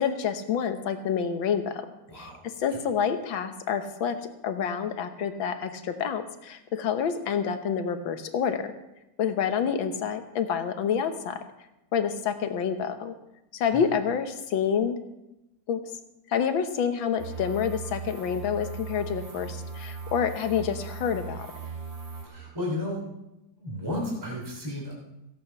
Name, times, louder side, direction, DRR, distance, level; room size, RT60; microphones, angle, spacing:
voice 1, 0.0-1.8 2.1-4.2 4.4-8.7 9.2-11.4 11.9-13.1 13.5-15.0 15.7-15.8 16.3-21.5, left 7 dB, 85° left, 8 dB, 1.9 m, -28 dB
voice 2, 2.1-2.4 2.7-2.8 13.7-13.8 22.2-23.0 23.6-24.9, left 1 dB, 10° right, -3 dB, 3.2 m, -33 dB
sound 1, 17.2-22.3, right 5 dB, 45° right, 3.2 m, -38 dB
16.5 x 8.7 x 5.7 m, 0.94 s
omnidirectional pair, 2.1 m